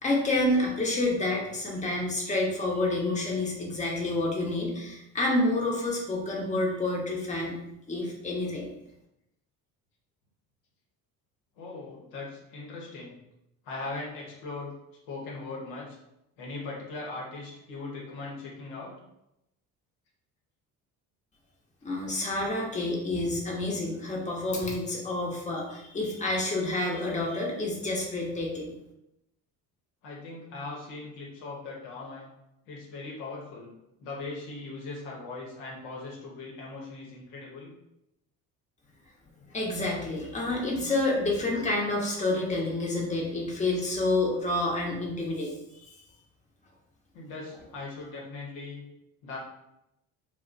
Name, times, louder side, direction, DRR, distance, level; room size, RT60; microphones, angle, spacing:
voice 1, 0.0-7.6 7.9-8.7 21.8-28.7 39.4-45.5 45.9-46.0, left 2 dB, 15° left, -2 dB, 0.9 m, -29 dB
voice 2, 11.6-13.2 13.6-14.7 15.1-16.0 16.4-18.9 30.0-32.3 32.7-33.7 34.0-37.7 47.1-48.8 49.2-49.4, left 3 dB, 75° left, -3 dB, 0.9 m, -39 dB
2.3 x 2.2 x 3.9 m, 0.85 s
hypercardioid pair, 60°, 43 cm